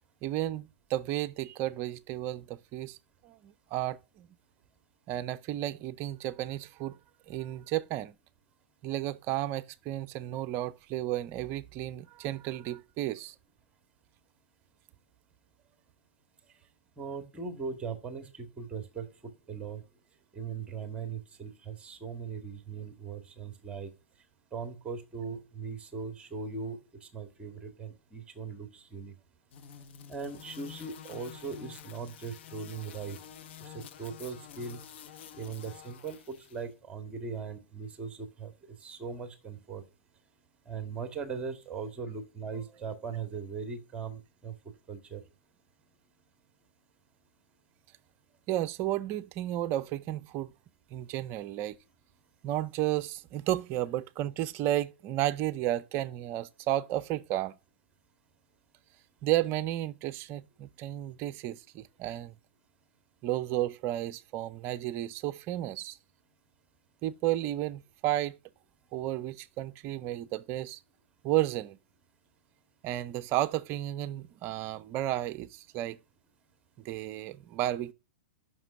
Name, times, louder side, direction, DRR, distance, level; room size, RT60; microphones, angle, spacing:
voice 1, 0.2-3.0 3.2-4.3 5.1-7.0 7.3-8.1 8.8-13.3 48.5-50.5 50.9-51.8 52.4-57.6 59.2-62.3 63.2-66.0 67.0-68.4 68.9-70.8 71.2-71.8 72.8-76.0 76.8-77.9, right 14 dB, 35° right, 0.6 m, -32 dB
voice 2, 17.0-19.8 20.3-23.9 24.5-29.1 30.1-33.2 33.6-34.8 35.3-38.5 38.8-39.8 40.7-45.2, right 5 dB, 15° right, 1.8 m, -39 dB
sound 1, 29.5-36.6, left 9 dB, 60° left, 1.0 m, -49 dB
7.7 x 5.9 x 6.4 m
hypercardioid pair, 115°, 7 cm